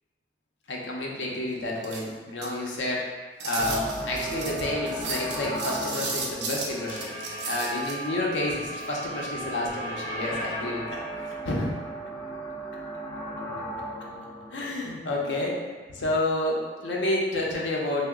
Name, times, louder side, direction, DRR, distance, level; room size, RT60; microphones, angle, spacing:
voice 1, 0.7-3.0 3.4-7.2 7.4-11.7 14.5-15.6 15.9-18.0, left 1 dB, 85° left, -2 dB, 0.6 m, -30 dB
sound 1, 1.8-2.9 3.4-7.9, right 4 dB, 70° right, 0.4 m, -34 dB
sound 2, 3.6-15.7, right 1 dB, 15° left, 0.6 m, -36 dB
2.8 x 2.0 x 3.5 m, 1.4 s
head